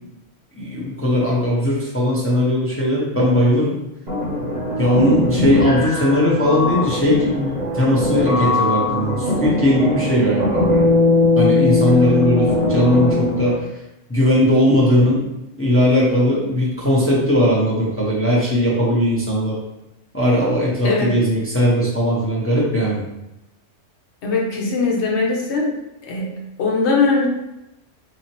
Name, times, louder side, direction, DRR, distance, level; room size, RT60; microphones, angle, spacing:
voice 1, 0.6-3.8 4.8-10.8 11.4-13.6 14.1-15.3 15.6-19.6 20.1-23.0, left 1 dB, 15° left, -6 dB, 0.7 m, -18 dB
sound 1, 4.1-13.6, left 2 dB, 40° right, 1.0 m, -20 dB
voice 2, 20.8-21.2 24.2-25.7 26.0-27.3, left 3 dB, 65° left, -2 dB, 1.1 m, -20 dB
4.1 x 2.9 x 2.9 m, 0.89 s
omnidirectional pair, 1.3 m